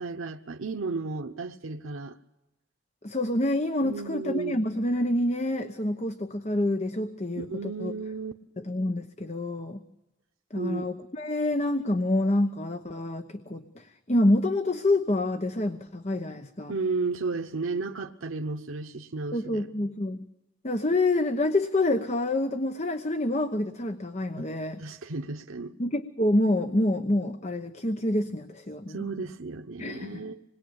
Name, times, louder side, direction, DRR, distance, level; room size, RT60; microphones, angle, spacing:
voice 1, 0.0-2.2 3.8-4.6 7.4-8.3 10.5-10.9 16.7-19.7 24.4-25.7 28.9-30.4, right 3 dB, 90° right, 1.0 m, -33 dB
voice 2, 3.0-7.9 8.6-9.8 10.5-16.7 19.3-20.2 20.6-24.8 25.8-29.0 29.8-30.2, left 1 dB, 35° left, 1.0 m, -27 dB
27.0 x 21.0 x 8.8 m
head